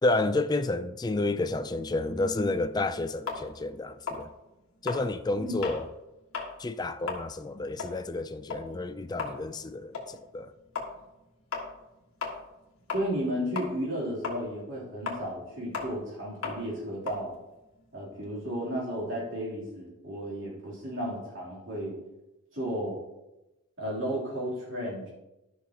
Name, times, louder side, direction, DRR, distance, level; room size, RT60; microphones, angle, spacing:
voice 1, 0.0-4.3 4.8-5.9 6.6-10.5, left 2 dB, 20° left, 0.4 m, -30 dB
sound 1, 3.3-5.9 6.2-6.6 6.9-13.3 13.5-18.3, left 4 dB, 85° left, 1.6 m, -37 dB
voice 2, 12.9-17.3 17.9-22.0 22.5-23.0 23.8-25.1, equal, 60° right, 3.1 m, -33 dB
13.5 x 5.9 x 2.9 m
head